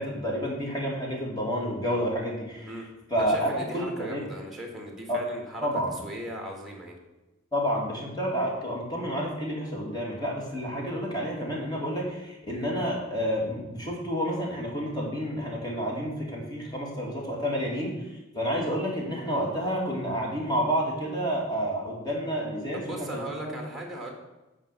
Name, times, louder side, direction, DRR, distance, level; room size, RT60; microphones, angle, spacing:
voice 1, 0.0-2.7 3.1-4.2 5.1-5.2 5.6-5.9 7.5-17.9 18.3-23.5, equal, 20° left, -2 dB, 2.4 m, -29 dB
voice 2, 3.2-5.7 6.0-7.0 22.7-24.1, right 1 dB, ahead, 1 dB, 1.8 m, -38 dB
9.2 x 4.9 x 6.8 m, 1.0 s
head